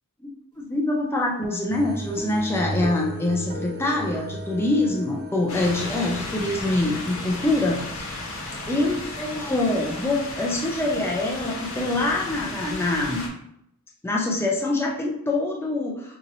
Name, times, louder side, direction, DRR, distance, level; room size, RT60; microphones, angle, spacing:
voice 1, 0.6-8.3 8.7-13.3 14.0-16.2, left 2 dB, 10° left, -1 dB, 0.4 m, -25 dB
Guitar, 1.4-8.0, right 1 dB, 35° right, 0.8 m, -40 dB
sound 1, 1.7-9.8, right 1 dB, 75° right, 0.6 m, -38 dB
sound 2, 5.5-13.3, left 2 dB, 70° left, 1.0 m, -34 dB
5.1 x 2.8 x 2.6 m, 0.75 s
head